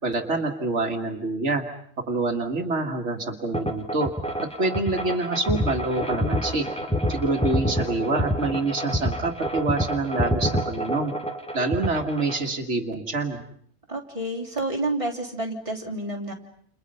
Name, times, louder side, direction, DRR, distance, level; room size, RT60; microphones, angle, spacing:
voice 1, 0.0-1.6 2.1-4.1 4.6-6.7 7.1-11.1 11.5-13.4, right 3 dB, 85° right, 3 dB, 2.2 m, -26 dB
sound 1, 3.5-12.4, equal, 5° left, 2.3 m, -27 dB
voice 2, 13.9-16.3, right 2 dB, 30° right, 0 dB, 3.7 m, -29 dB
29.5 x 29.0 x 5.6 m, 0.64 s
omnidirectional pair, 1.2 m